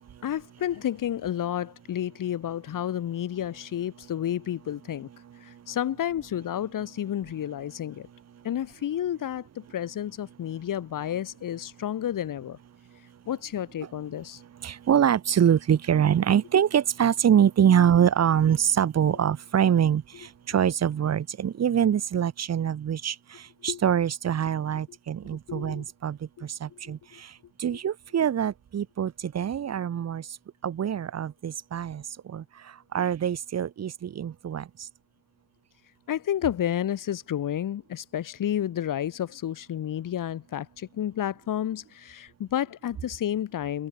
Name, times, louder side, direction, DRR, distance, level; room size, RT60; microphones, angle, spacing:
voice 1, 0.2-5.1 5.4-8.1 8.4-12.6 13.3-14.4 23.7-23.8 25.5-25.8 26.4-26.5 26.8-27.0 27.7-27.8 36.1-43.9, left 10 dB, 70° left, 5.4 m, -31 dB
voice 2, 14.6-23.2 23.6-26.2 26.6-27.0 27.6-30.2 30.6-32.0 32.3-32.4 32.9-34.6, right 9 dB, 50° right, 2.0 m, -24 dB
wide cardioid pair, 150°, 33 cm